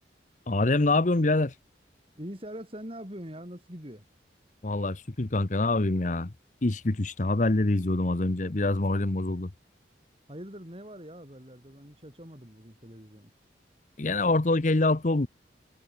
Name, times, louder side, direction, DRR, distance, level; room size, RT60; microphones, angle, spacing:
voice 1, 0.5-1.5 4.6-6.3 6.6-9.5 14.0-15.3, left 2 dB, 45° left, 0.9 m, -25 dB
voice 2, 2.2-4.1 10.3-13.3, equal, 30° right, 7.3 m, -43 dB
head